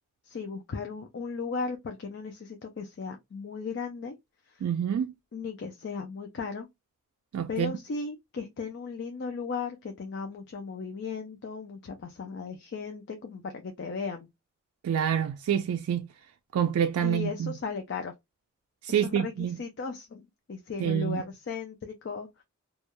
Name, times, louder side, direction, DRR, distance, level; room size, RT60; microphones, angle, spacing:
voice 1, 0.2-4.1 4.5-4.7 5.3-6.7 7.5-14.3 17.0-18.1 18.9-22.4, left 5 dB, 55° left, 0.4 m, -36 dB
voice 2, 4.6-5.1 7.3-7.7 14.8-16.1 16.5-17.5 18.8-19.6 20.8-21.2, right 9 dB, 90° right, 0.3 m, -27 dB
2.3 x 2.1 x 2.9 m
head